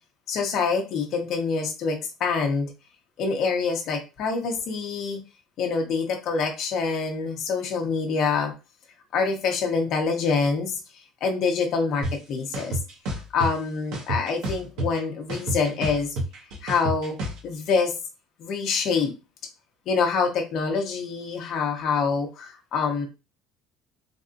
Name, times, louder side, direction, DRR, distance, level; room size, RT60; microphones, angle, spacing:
voice 1, 0.3-2.7 3.2-5.2 5.6-8.5 9.1-10.8 11.2-12.8 13.3-16.1 16.6-17.2 17.4-17.9 18.4-19.1 19.9-23.0, left 5 dB, 45° left, 2 dB, 0.8 m, -26 dB
sound 1, 12.0-12.1 12.5-13.5 13.9-15.0 15.3-17.4, right 1 dB, 65° right, 1.2 m, -28 dB
3.4 x 2.6 x 2.5 m, 0.29 s
cardioid pair, 160°, 0 cm